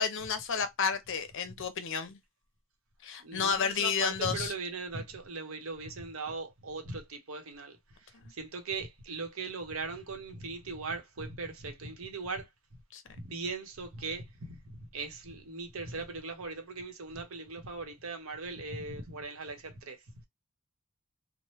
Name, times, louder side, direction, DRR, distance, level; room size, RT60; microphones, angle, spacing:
voice 1, 0.0-2.2 3.0-4.5 12.9-13.0, left 6 dB, 60° left, 0.6 m, -31 dB
voice 2, 3.2-12.5 13.1-20.3, right 3 dB, 70° right, 0.9 m, -39 dB
3.1 x 2.1 x 3.0 m
head